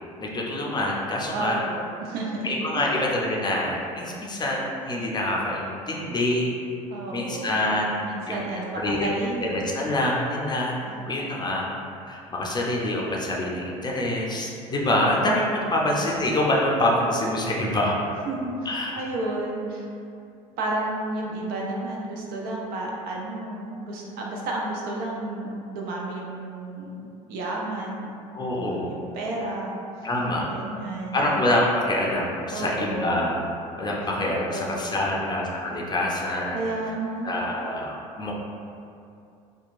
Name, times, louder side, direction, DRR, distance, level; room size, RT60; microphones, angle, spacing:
voice 1, 0.2-1.6 2.4-6.5 7.1-8.4 8.7-9.1 9.4-10.8 11.0-11.7 12.1-18.0 18.7-19.0 28.3-28.9 30.0-30.5 31.1-33.4 33.8-36.6 37.2-38.3, left 1 dB, 25° left, -3 dB, 0.5 m, -26 dB
voice 2, 1.3-2.5 2.7-2.9 6.9-7.6 8.0-9.5 15.8-16.0 18.3-19.9 20.6-27.0 27.3-28.2 28.6-30.1 30.5-31.3 32.5-33.2 34.5-35.4 36.5-37.3, right 2 dB, 55° right, -2 dB, 0.5 m, -32 dB
2.8 x 2.2 x 2.5 m, 2.5 s
hypercardioid pair, 65°, 18 cm